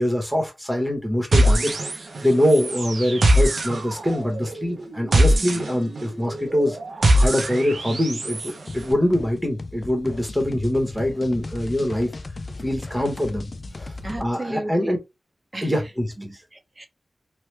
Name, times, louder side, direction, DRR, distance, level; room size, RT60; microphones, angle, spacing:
voice 1, 0.0-1.7 2.2-6.8 7.2-12.1 12.6-13.5 13.8-13.9 14.2-15.0 15.6-16.3, left 1 dB, 5° right, 1.0 m, -23 dB
sound 1, 1.3-2.2 2.5-8.5, right 1 dB, 70° right, 0.6 m, -21 dB
sound 2, 8.7-14.3, left 2 dB, 50° left, 0.4 m, -36 dB
voice 2, 14.0-15.0 15.5-15.7 16.2-16.9, right 1 dB, 30° right, 0.6 m, -33 dB
3.1 x 2.2 x 3.2 m
wide cardioid pair, 105°, 0 cm